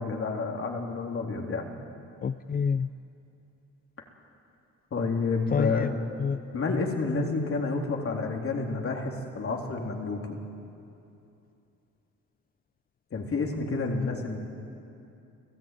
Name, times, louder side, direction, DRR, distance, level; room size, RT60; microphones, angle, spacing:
voice 1, 0.0-1.7 4.9-5.9 6.5-10.4 13.1-14.4, left 3 dB, 45° left, 1 dB, 3.7 m, -29 dB
voice 2, 2.2-2.9 5.5-5.9 6.2-6.5 13.9-14.4, left 6 dB, 30° left, 12 dB, 0.5 m, -29 dB
29.5 x 16.0 x 9.2 m, 2.7 s
cardioid pair, 90°, 30 cm